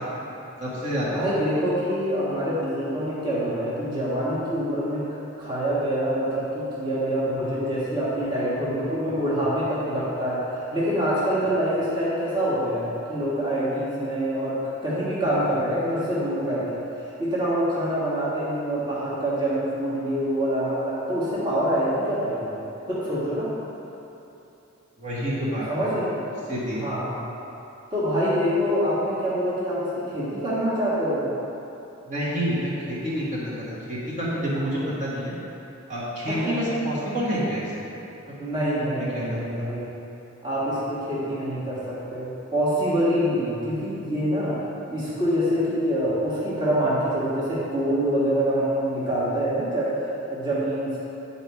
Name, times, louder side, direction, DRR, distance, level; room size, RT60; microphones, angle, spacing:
voice 1, 0.6-1.2 9.0-9.2 25.0-25.7 26.5-26.8 32.1-35.3 35.9-37.7 38.6-39.4, equal, 40° right, -9 dB, 1.5 m, -28 dB
voice 2, 1.1-5.0 5.4-23.5 25.7-26.2 26.7-27.1 27.9-31.3 36.2-36.5 38.4-39.9 40.4-44.6 44.9-51.0, equal, 20° right, -10 dB, 1.5 m, -25 dB
9.0 x 4.1 x 4.7 m, 2.9 s
head